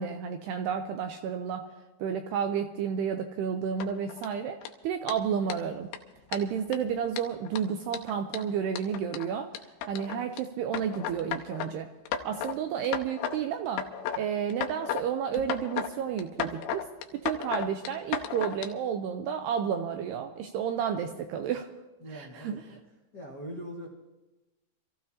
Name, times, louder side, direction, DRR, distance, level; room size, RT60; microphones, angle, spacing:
voice 1, 0.0-1.7 2.0-4.6 4.8-5.9 6.3-9.5 9.9-11.9 12.2-13.9 14.1-16.9 17.1-21.7 22.1-22.8, right 7 dB, 85° right, 6 dB, 2.4 m, -31 dB
sound 1, 3.8-4.3 4.6-4.7 5.1-5.2 5.5-5.6 5.9-6.0 6.3-6.8 7.1-10.4 10.7-11.7 12.1-12.6 12.8-13.4 13.7-14.2 14.5-15.0 15.3-15.9 16.2-18.7, left 9 dB, 90° left, 3.2 m, -34 dB
voice 2, 22.0-22.8 23.1-23.9, equal, 65° left, -5 dB, 1.0 m, -41 dB
26.5 x 15.0 x 2.8 m, 1.1 s
omnidirectional pair, 5.4 m